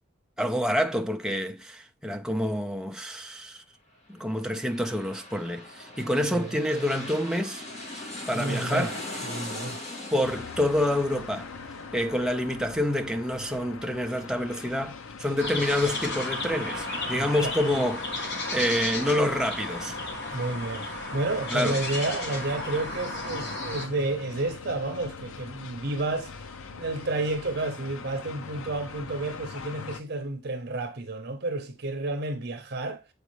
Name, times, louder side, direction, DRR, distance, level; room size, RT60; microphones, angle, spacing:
voice 1, 0.4-3.6 4.1-7.6 8.3-8.9 10.1-11.5 11.9-18.0 18.5-20.0 21.5-21.8, left 1 dB, 5° right, 0.5 m, -27 dB
sound 1, 4.1-15.5 15.8-15.9, left 2 dB, 35° left, 1.9 m, -41 dB
voice 2, 6.3-6.6 8.3-8.9 9.3-9.8 17.1-17.3 20.3-33.0, right 2 dB, 50° right, 0.7 m, -31 dB
sound 2, 10.2-30.0, left 4 dB, 80° left, 0.6 m, -43 dB
sound 3, 15.4-23.9, left 2 dB, 55° left, 1.5 m, -33 dB
7.4 x 4.8 x 3.1 m
head